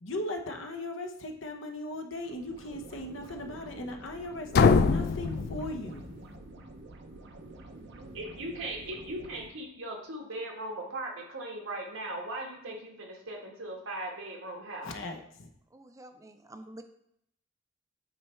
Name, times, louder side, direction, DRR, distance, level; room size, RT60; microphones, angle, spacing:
voice 1, 0.0-6.1 14.8-15.5, left 1 dB, 75° left, 4 dB, 0.8 m, -38 dB
sound 1, 2.2-9.5, right 2 dB, 60° right, 0.7 m, -48 dB
sound 2, 4.5-6.4, left 5 dB, 50° left, 0.3 m, -24 dB
voice 2, 8.0-14.9, right 1 dB, 90° right, 0 dB, 1.6 m, -39 dB
voice 3, 15.7-16.8, right 1 dB, 15° right, 7 dB, 0.4 m, -48 dB
8.6 x 3.3 x 4.4 m, 0.74 s
head